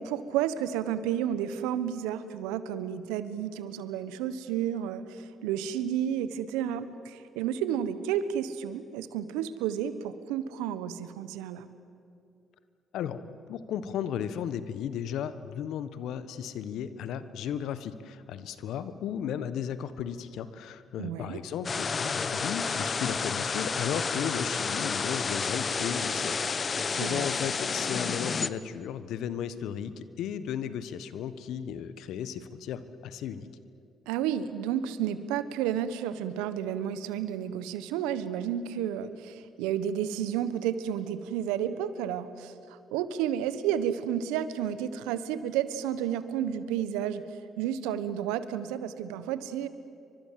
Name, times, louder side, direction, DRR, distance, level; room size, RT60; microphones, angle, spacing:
voice 1, 0.0-11.7 21.0-21.4 27.0-27.2 34.1-42.5 42.9-47.2 47.6-49.7, right 10 dB, 80° right, 13 dB, 1.3 m, -31 dB
voice 2, 13.5-33.5, left 9 dB, 70° left, 13 dB, 1.3 m, -35 dB
sound 1, 21.6-28.5, left 5 dB, 40° left, 1.1 m, -30 dB
29.0 x 24.5 x 7.7 m, 2.6 s
hypercardioid pair, 55°, 0 cm